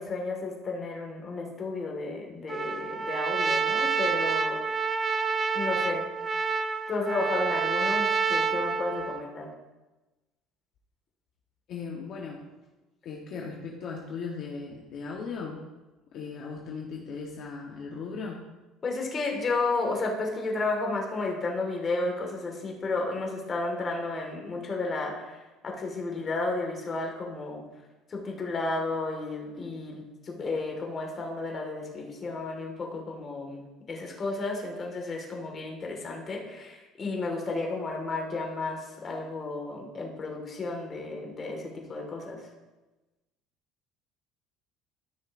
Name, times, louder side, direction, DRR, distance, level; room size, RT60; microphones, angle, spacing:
voice 1, 0.0-4.9 5.5-6.1 6.9-9.5 18.8-27.6 28.1-42.5, left 3 dB, 30° left, 1 dB, 1.8 m, -32 dB
Trumpet, 2.5-9.3, right 5 dB, 20° right, 0.4 m, -28 dB
voice 2, 11.7-12.4 13.0-15.7 16.1-18.4, left 5 dB, 50° left, -1 dB, 1.1 m, -37 dB
13.5 x 6.2 x 2.6 m, 1.1 s
cardioid pair, 140°, 0 cm